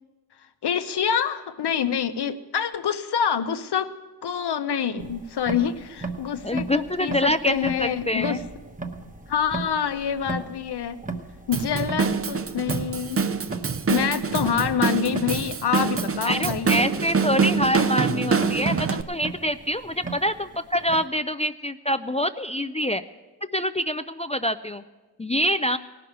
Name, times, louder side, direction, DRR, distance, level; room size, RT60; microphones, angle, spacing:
voice 1, 0.6-3.9 4.2-8.4 9.3-11.0 11.5-13.2 13.9-16.8, left 8 dB, 85° left, 10 dB, 0.8 m, -26 dB
sound 1, 5.0-21.1, right 3 dB, 20° right, 0.9 m, -38 dB
voice 2, 6.4-8.4 16.2-23.0 23.5-24.8 25.2-25.8, equal, 20° left, 11 dB, 0.3 m, -25 dB
Drum kit / Drum, 11.5-19.0, right 5 dB, 35° right, 0.6 m, -25 dB
18.0 x 6.2 x 7.9 m, 1.2 s
wide cardioid pair, 85°, 39 cm